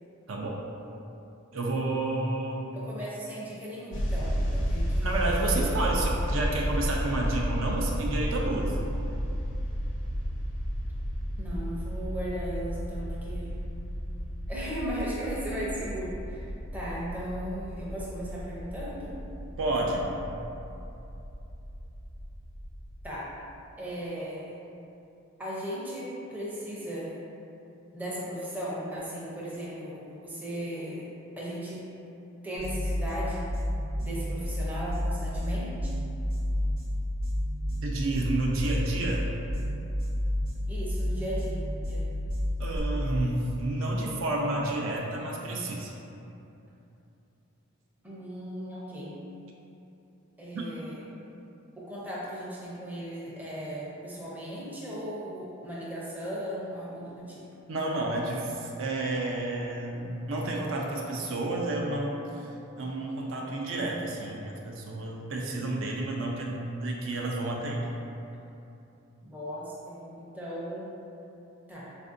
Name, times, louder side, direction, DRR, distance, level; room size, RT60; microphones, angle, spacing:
voice 1, 0.3-0.6 1.5-2.6 5.0-8.8 19.6-20.1 37.8-39.2 42.6-45.9 57.7-62.5 62.8-66.5 66.8-67.8, right 2 dB, 65° right, -2 dB, 0.4 m, -30 dB
voice 2, 2.7-5.9 11.4-13.6 14.5-19.1 23.0-23.3 23.8-24.6 25.4-27.2 27.9-31.1 31.4-31.9 32.4-33.5 34.0-35.9 40.7-41.6 41.9-42.1 48.0-49.2 50.4-51.1 51.8-57.5 69.2-70.9 71.7-71.9, equal, 10° right, -8 dB, 0.5 m, -37 dB
sound 1, 3.9-23.1, equal, 60° left, 0.5 m, -32 dB
sound 2, 32.6-42.8, left 1 dB, 80° right, 0.8 m, -31 dB
4.2 x 2.5 x 2.5 m, 2.8 s
head